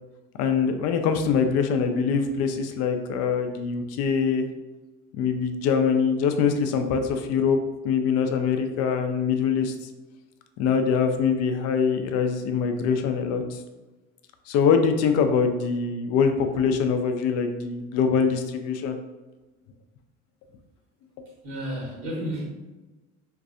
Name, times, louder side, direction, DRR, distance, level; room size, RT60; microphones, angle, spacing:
voice 1, 0.4-4.5 5.1-7.6 7.8-9.9 10.6-13.6 14.5-19.0, left 6 dB, 45° left, 6 dB, 0.5 m, -23 dB
voice 2, 21.4-22.5, equal, 60° right, -2 dB, 1.2 m, -31 dB
3.9 x 2.6 x 2.5 m, 1.1 s
figure-of-eight pair, 60°, 36 cm